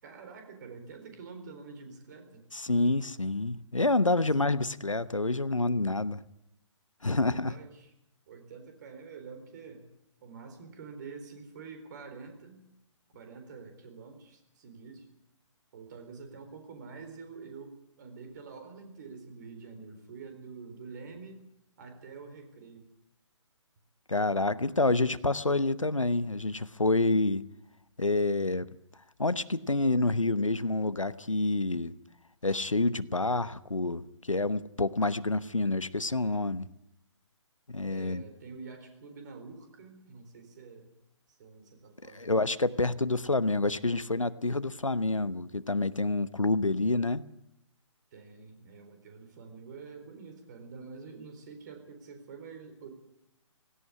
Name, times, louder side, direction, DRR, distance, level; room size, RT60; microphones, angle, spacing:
voice 1, 0.0-2.4 4.2-4.3 7.1-7.9 8.3-9.9 10.2-12.6 13.1-15.1 15.7-21.4 21.8-22.9 24.1-24.7 37.9-40.9 41.4-42.3 48.1-52.9, right 5 dB, 35° right, 4.1 m, -47 dB
voice 2, 2.5-6.2 7.0-7.5 24.1-27.4 28.0-28.7 29.2-31.9 32.4-36.7 37.7-38.2 42.1-47.2, left 2 dB, 85° left, 1.0 m, -28 dB
17.0 x 17.0 x 9.8 m
figure-of-eight pair, 135°, 16 cm